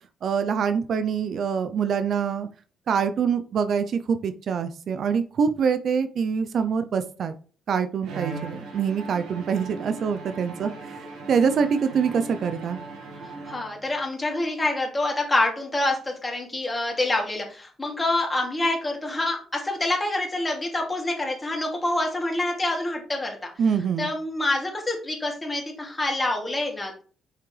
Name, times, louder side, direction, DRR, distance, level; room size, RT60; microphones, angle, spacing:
voice 1, 0.2-2.5 2.9-7.3 7.7-12.8 23.6-24.1, right 6 dB, 60° right, 10 dB, 0.6 m, -25 dB
Bowed string instrument, 8.0-14.1, right 4 dB, 85° right, 1.8 m, -38 dB
voice 2, 13.2-23.5 24.0-27.0, left 2 dB, 20° left, 0 dB, 2.6 m, -26 dB
6.4 x 5.9 x 3.3 m, 0.40 s
cardioid pair, 90°, 0 cm